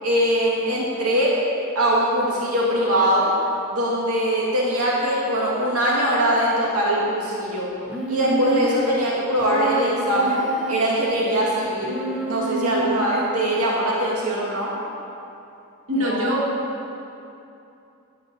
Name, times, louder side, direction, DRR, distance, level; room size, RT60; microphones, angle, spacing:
voice 1, 0.0-1.3 1.8-3.3 3.7-7.7 8.1-12.0 12.2-14.7 16.0-16.2, equal, 90° right, -5 dB, 2.3 m, -22 dB
Human voice, 7.9-8.9 9.4-11.0 11.8-13.1, right 2 dB, 5° right, 0.9 m, -28 dB
voice 2, 8.2-8.6 12.8-13.0 15.9-16.5, equal, 60° right, -5 dB, 2.9 m, -25 dB
12.0 x 8.2 x 8.0 m, 2.7 s
head